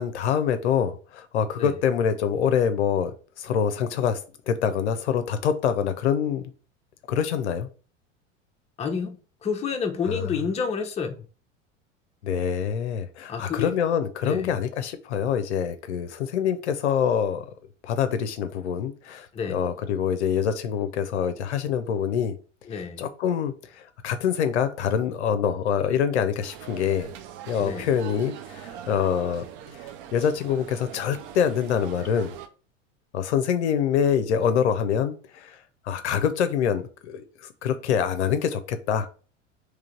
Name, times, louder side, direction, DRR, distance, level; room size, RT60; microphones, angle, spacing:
voice 1, 0.0-4.2 4.5-6.4 7.1-7.7 10.0-10.3 12.2-17.4 17.8-22.3 22.7-27.1 27.5-29.4 29.7-32.3 33.1-35.6 35.8-39.1, left 8 dB, 60° left, 0.6 m, -25 dB
voice 2, 8.8-9.2 9.4-11.3 13.3-13.8 14.2-14.5 19.3-19.6 22.7-23.0 27.6-27.9, left 5 dB, 15° left, 0.7 m, -29 dB
sound 1, 26.4-32.5, right 10 dB, 45° right, 0.6 m, -42 dB
3.7 x 3.2 x 4.4 m
figure-of-eight pair, 80°, 38 cm